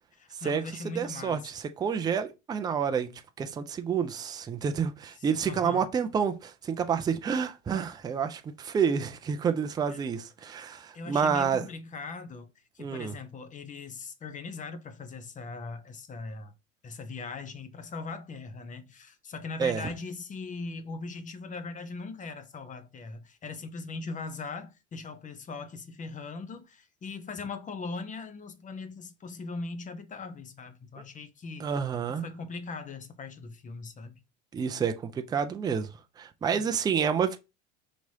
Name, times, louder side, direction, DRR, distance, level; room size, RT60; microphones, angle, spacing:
voice 1, 0.1-1.5 5.2-5.9 9.9-10.0 10.9-16.5 16.8-31.7 32.1-34.2, left 4 dB, 20° left, 0.7 m, -40 dB
voice 2, 1.0-3.1 3.4-11.7 12.8-13.1 19.6-19.9 31.6-32.2 34.5-35.9 36.2-37.4, right 7 dB, 10° right, 0.4 m, -29 dB
5.1 x 2.9 x 2.7 m
hypercardioid pair, 90°, 37 cm